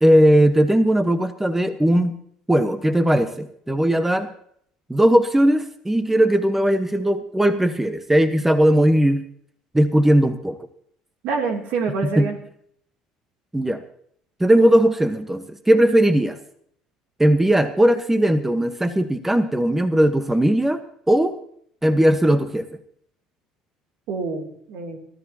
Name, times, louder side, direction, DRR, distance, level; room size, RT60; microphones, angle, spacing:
voice 1, 0.0-2.2 2.5-4.3 4.9-9.2 9.7-10.6 12.2-12.3 13.5-13.8 14.4-16.4 17.2-21.4 21.8-22.6, right 1 dB, 10° right, 9 dB, 1.2 m, -18 dB
voice 2, 11.2-12.4 24.1-25.0, right 4 dB, 65° right, 3 dB, 3.0 m, -26 dB
24.5 x 13.5 x 2.9 m, 0.66 s
hypercardioid pair, 65°, 3 cm